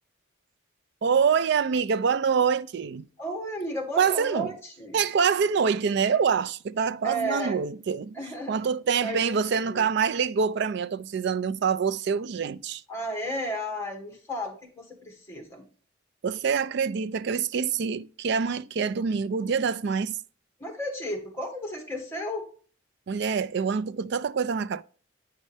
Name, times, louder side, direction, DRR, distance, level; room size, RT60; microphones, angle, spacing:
voice 1, 1.0-3.1 4.0-4.5 4.9-12.8 16.2-20.2 23.1-24.8, right 6 dB, 55° right, 0.4 m, -25 dB
voice 2, 3.2-5.0 7.0-7.6 8.1-8.6 9.0-9.9 12.9-15.6 20.6-22.4, equal, 15° left, 1.9 m, -33 dB
9.2 x 5.3 x 3.2 m
head